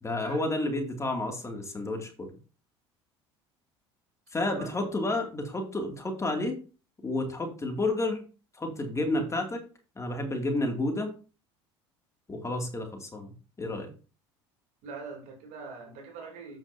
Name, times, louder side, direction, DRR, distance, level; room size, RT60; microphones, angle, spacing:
voice 1, 0.0-2.3 4.3-6.6 7.0-8.2 8.6-9.6 10.0-11.1 12.3-13.3 13.6-13.9, left 2 dB, 20° left, 3 dB, 2.5 m, -30 dB
voice 2, 14.8-16.6, right 4 dB, 60° right, 2 dB, 3.2 m, -42 dB
8.7 x 7.2 x 2.7 m, 0.36 s
hypercardioid pair, 70°, 14 cm